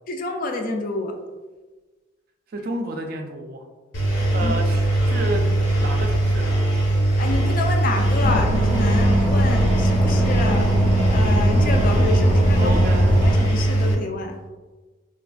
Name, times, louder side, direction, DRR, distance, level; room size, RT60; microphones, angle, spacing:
voice 1, 0.1-1.1 4.4-4.5 7.2-10.7 11.1-12.7 13.2-14.3, left 2 dB, 45° left, 3 dB, 0.3 m, -28 dB
voice 2, 2.5-3.6 4.3-5.5 5.8-6.6 12.6-13.0, right 1 dB, 50° right, 3 dB, 0.3 m, -30 dB
Engine, 3.9-13.9, right 1 dB, 80° left, 0.8 m, -21 dB
sound 1, 8.2-13.3, equal, 5° right, 0.6 m, -21 dB
3.3 x 2.4 x 2.2 m, 1.3 s
head